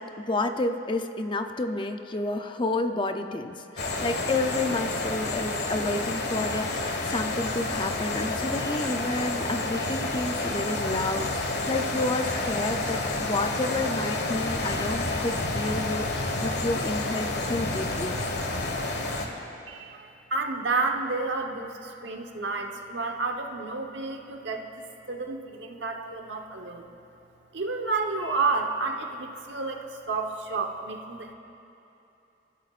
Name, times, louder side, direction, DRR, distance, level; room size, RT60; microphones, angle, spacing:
voice 1, 0.0-18.2, left 2 dB, 25° left, 7 dB, 0.6 m, -30 dB
sound 1, 3.8-19.3, left 2 dB, 65° left, 1.5 m, -29 dB
voice 2, 19.7-24.7 25.1-27.0 27.5-31.3, right 3 dB, 70° right, 3 dB, 1.2 m, -30 dB
26.0 x 14.0 x 2.5 m, 2.9 s
head